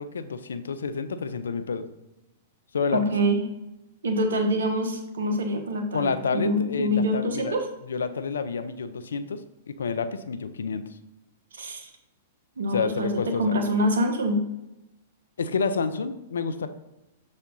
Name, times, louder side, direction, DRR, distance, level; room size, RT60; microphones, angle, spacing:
voice 1, 0.0-1.9 2.7-3.0 5.9-7.6 7.9-9.4 9.7-10.8 12.7-13.6 15.4-16.7, left 5 dB, 80° left, 11 dB, 0.6 m, -29 dB
voice 2, 2.9-3.4 4.0-7.7 11.6-11.9 12.6-14.4, equal, 80° right, 5 dB, 1.2 m, -25 dB
7.1 x 4.3 x 3.8 m, 0.94 s
hypercardioid pair, 115°, 0 cm